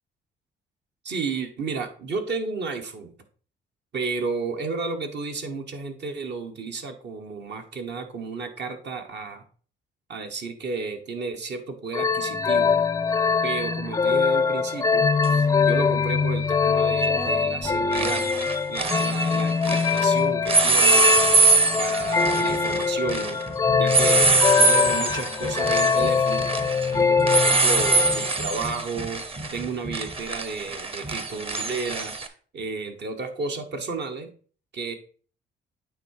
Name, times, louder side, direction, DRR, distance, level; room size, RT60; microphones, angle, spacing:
voice 1, 1.0-3.1 3.9-9.4 10.1-12.9 13.4-18.2 18.7-21.3 21.8-26.5 27.0-29.2 29.5-32.1 32.5-34.3 34.7-34.9, right 4 dB, 60° right, 5 dB, 1.4 m, -32 dB
sound 1, 11.9-28.4, left 5 dB, 15° left, 0.4 m, -23 dB
sound 2, 15.2-15.3 17.1-17.4 17.6-20.1 20.5-32.3, right 3 dB, 30° right, 0.9 m, -24 dB
8.9 x 3.7 x 4.8 m, 0.42 s
cardioid pair, 90°, 20 cm